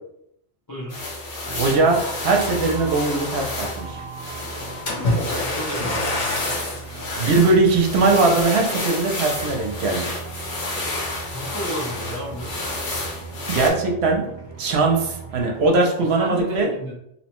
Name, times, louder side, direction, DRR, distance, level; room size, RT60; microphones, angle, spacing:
voice 1, 0.7-1.0 5.4-6.5 11.3-12.5 16.1-16.9, equal, 35° left, -5 dB, 0.3 m, -33 dB
sound 1, 0.9-13.7, left 2 dB, 85° left, 1.2 m, -30 dB
sound 2, 1.4-15.7, right 4 dB, 30° right, 0.6 m, -39 dB
voice 2, 1.6-4.0 7.2-10.2 13.5-14.3 14.6-16.7, right 3 dB, 70° right, 1 dB, 0.8 m, -20 dB
Splash splatter, 4.9-6.9 7.6-7.8 8.4-8.5, left 2 dB, 65° left, 1.1 m, -25 dB
2.9 x 2.1 x 2.9 m, 0.76 s
omnidirectional pair, 1.2 m